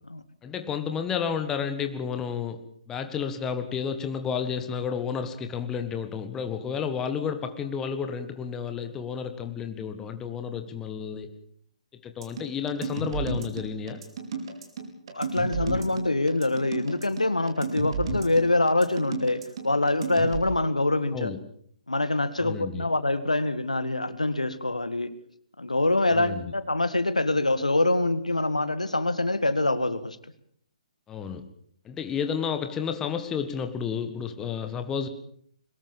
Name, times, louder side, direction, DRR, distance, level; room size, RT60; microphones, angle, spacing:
voice 1, 0.4-11.3 12.0-14.0 21.1-21.4 22.4-22.8 26.1-26.5 31.1-31.5 31.9-35.1, left 7 dB, 15° left, 8 dB, 1.6 m, -31 dB
sound 1, 12.2-20.4, right 4 dB, 45° right, 4.7 m, -32 dB
voice 2, 15.1-21.3 21.9-25.1 25.6-30.2, left 2 dB, 80° left, 13 dB, 1.9 m, -25 dB
22.5 x 20.0 x 7.3 m, 0.63 s
figure-of-eight pair, 130°, 4 cm